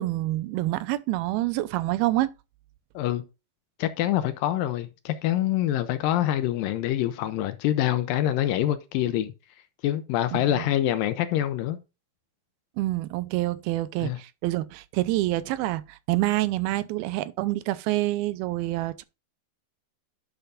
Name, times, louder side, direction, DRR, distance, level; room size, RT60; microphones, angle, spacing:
voice 1, 0.0-2.3 10.5-10.6 12.8-19.0, right 17 dB, 85° right, 2.5 m, -27 dB
voice 2, 3.8-9.3 9.8-11.8 14.0-14.2, left 12 dB, 75° left, 2.2 m, -25 dB
10.5 x 6.7 x 2.5 m
omnidirectional pair, 4.4 m